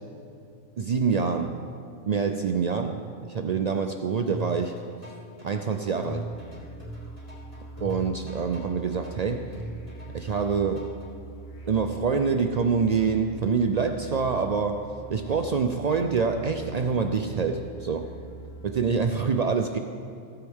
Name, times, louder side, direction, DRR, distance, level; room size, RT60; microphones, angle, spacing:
voice 1, 0.8-1.6 2.1-4.7 5.4-6.3 7.8-9.5 10.1-10.9 11.7-18.1 18.6-19.8, right 5 dB, 75° right, 6 dB, 0.3 m, -26 dB
sound 1, 4.3-11.1, equal, 30° left, 2.7 m, -40 dB
sound 2, 6.1-18.9, right 2 dB, 80° left, 2.1 m, -43 dB
17.0 x 7.9 x 3.6 m, 2.6 s
omnidirectional pair, 1.3 m